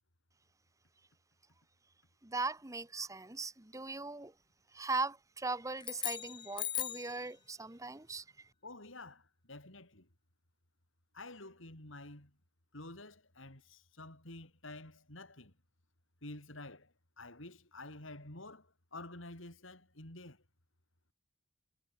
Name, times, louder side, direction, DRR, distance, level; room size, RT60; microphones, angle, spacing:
voice 1, 2.2-4.3 4.7-8.5, right 3 dB, 15° right, 1.1 m, -39 dB
sound 1, 5.8-7.2, left 11 dB, 25° left, 0.4 m, -38 dB
voice 2, 8.6-10.1 11.1-12.4 12.7-15.5 16.2-20.4, left 2 dB, 70° left, 5.7 m, -50 dB
head